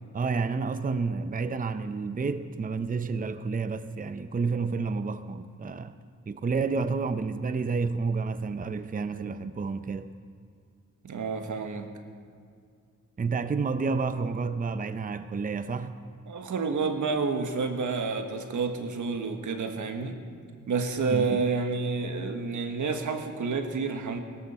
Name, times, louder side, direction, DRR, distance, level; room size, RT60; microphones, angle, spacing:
voice 1, 0.1-6.0 6.3-10.1 13.2-15.9 21.1-21.4, right 4 dB, 30° right, 0.6 m, -30 dB
voice 2, 11.0-11.9 16.3-20.2 20.7-24.2, right 4 dB, 90° right, 1.4 m, -29 dB
23.5 x 13.0 x 4.3 m
wide cardioid pair, 90°, 29 cm